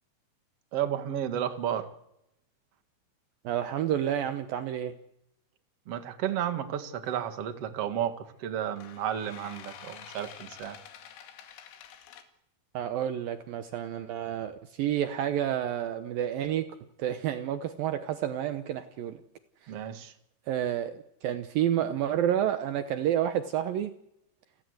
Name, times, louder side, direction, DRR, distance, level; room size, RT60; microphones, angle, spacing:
voice 1, 0.7-1.9 5.9-10.8 19.7-20.1, right 10 dB, 55° right, 8 dB, 1.8 m, -32 dB
voice 2, 3.4-4.9 12.7-16.7 17.0-19.2 20.5-23.9, right 10 dB, 85° right, 9 dB, 2.0 m, -29 dB
sound 1, 7.0-7.3 8.6-12.2, left 9 dB, 90° left, 4.8 m, -48 dB
30.0 x 17.0 x 8.0 m, 0.82 s
omnidirectional pair, 5.7 m